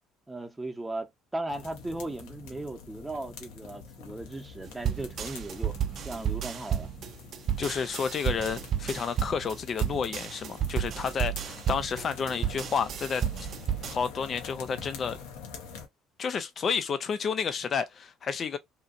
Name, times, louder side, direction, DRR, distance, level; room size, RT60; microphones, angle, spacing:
voice 1, 0.3-5.8 6.0-6.9, right 2 dB, 15° right, 0.8 m, -37 dB
sound 1, 1.5-15.9, left 5 dB, 75° left, 0.7 m, -46 dB
sound 2, 4.8-13.9, right 9 dB, 55° right, 0.5 m, -32 dB
voice 2, 7.6-13.2 13.8-15.2 16.2-18.6, left 6 dB, 45° left, 0.4 m, -31 dB
2.9 x 2.4 x 2.4 m
hypercardioid pair, 65°, 0 cm